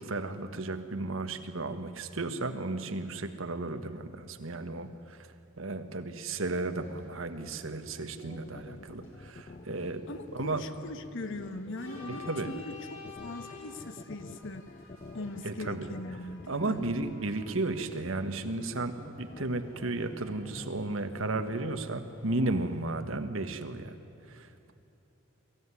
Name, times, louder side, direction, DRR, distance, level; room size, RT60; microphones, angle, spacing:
voice 1, 0.0-5.2 5.6-10.1 10.3-10.6 12.3-12.5 15.4-15.9 16.5-24.0 24.2-24.7, right 2 dB, 70° right, 8 dB, 1.5 m, -34 dB
sound 1, 6.7-22.9, left 3 dB, 85° left, 6.6 m, -53 dB
sound 2, 8.0-22.7, left 3 dB, 35° left, 0.5 m, -48 dB
voice 2, 10.1-14.7 15.1-16.8, left 2 dB, 65° left, 10 dB, 1.3 m, -41 dB
23.0 x 15.5 x 9.9 m, 2.9 s
head